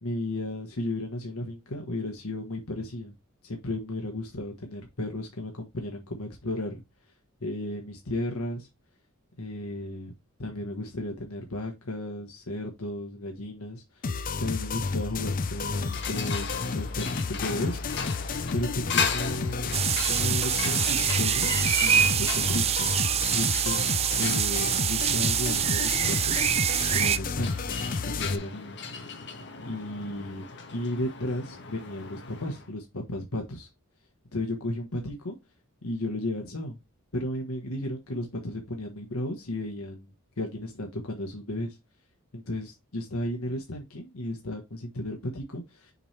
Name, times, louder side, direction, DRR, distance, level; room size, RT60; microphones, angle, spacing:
voice 1, 0.0-3.1 3.4-6.8 7.4-8.7 9.4-10.1 10.4-14.1 14.4-17.8 18.5-19.8 20.1-21.5 21.8-22.9 23.3-23.8 24.2-26.4 26.9-27.7 28.0-28.8 29.6-30.4 30.7-33.7 34.3-35.3 35.8-36.8 37.1-41.8 42.3-45.9, left 1 dB, 85° left, 2 dB, 1.4 m, -34 dB
sound 1, 14.0-28.4, left 4 dB, 40° left, 0.5 m, -31 dB
sound 2, 15.2-32.7, left 6 dB, 55° left, 1.3 m, -37 dB
sound 3, 19.7-27.2, right 10 dB, 30° right, 0.3 m, -25 dB
6.7 x 3.4 x 4.3 m, 0.21 s
head